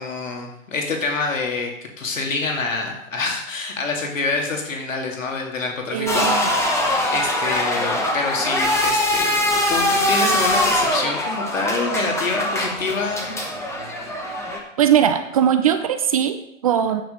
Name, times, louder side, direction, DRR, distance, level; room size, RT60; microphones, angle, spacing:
voice 1, 0.0-1.7 2.0-6.7 7.1-13.4, left 3 dB, 75° left, 1 dB, 2.4 m, -26 dB
voice 2, 5.9-6.5 14.8-17.0, right 9 dB, 30° right, 10 dB, 0.5 m, -20 dB
sound 1, 6.1-14.6, left 1 dB, 5° left, 1.2 m, -22 dB
9.3 x 6.6 x 5.2 m, 0.79 s
figure-of-eight pair, 125°, 40 cm